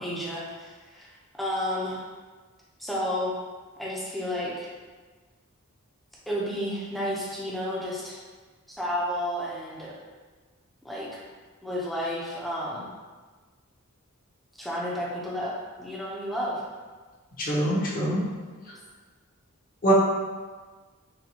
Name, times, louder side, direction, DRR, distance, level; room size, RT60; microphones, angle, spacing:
voice 1, 0.0-1.1 1.3-2.0 2.8-3.3 3.8-4.7 6.3-8.2 8.7-9.9 10.8-11.2 11.6-12.8 14.6-15.5 15.8-16.6, equal, ahead, -6 dB, 0.6 m, -31 dB
voice 2, 17.4-18.2 19.8-19.9, right 1 dB, 40° left, -5 dB, 0.8 m, -24 dB
4.2 x 2.2 x 2.7 m, 1.4 s
head